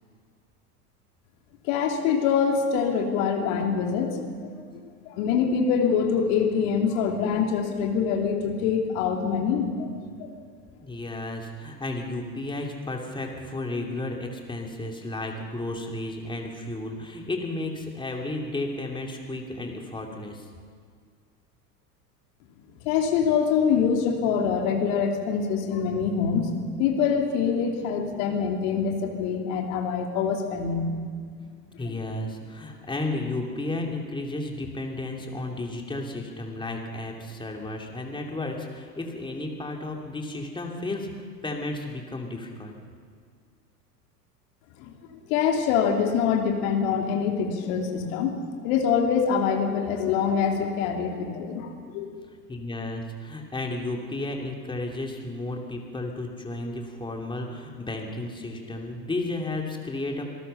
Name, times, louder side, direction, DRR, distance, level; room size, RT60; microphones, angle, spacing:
voice 1, 1.6-4.5 5.0-9.9 10.2-10.3 22.8-30.9 31.9-32.0 44.8-44.9 45.3-48.3 48.6-52.1, left 6 dB, 55° left, 3 dB, 3.0 m, -25 dB
voice 2, 10.8-20.5 31.8-41.1 41.4-42.8 52.5-60.2, left 2 dB, 10° left, 2 dB, 2.9 m, -33 dB
26.5 x 19.0 x 5.7 m, 2.1 s
hypercardioid pair, 90°, 48 cm